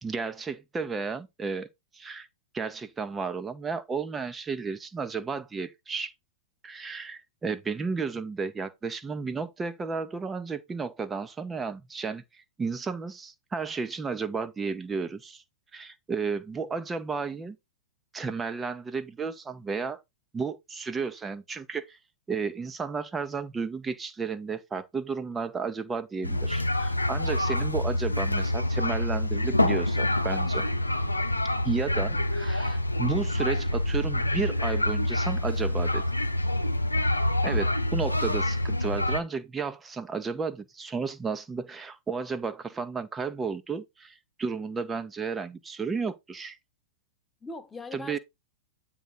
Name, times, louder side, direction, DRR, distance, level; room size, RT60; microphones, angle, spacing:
voice 1, 0.0-1.7 1.9-2.3 2.5-6.1 6.6-15.4 15.7-17.6 18.1-20.0 20.3-22.0 22.3-30.7 31.6-36.0 37.4-46.6 47.9-48.2, right 5 dB, 15° right, 1.0 m, -33 dB
sound 1, 26.2-39.2, left 1 dB, 85° left, 0.8 m, -27 dB
voice 2, 31.9-32.3 37.4-37.7 47.4-48.2, left 3 dB, 10° left, 1.4 m, -42 dB
9.3 x 3.8 x 4.5 m
figure-of-eight pair, 100°, 0 cm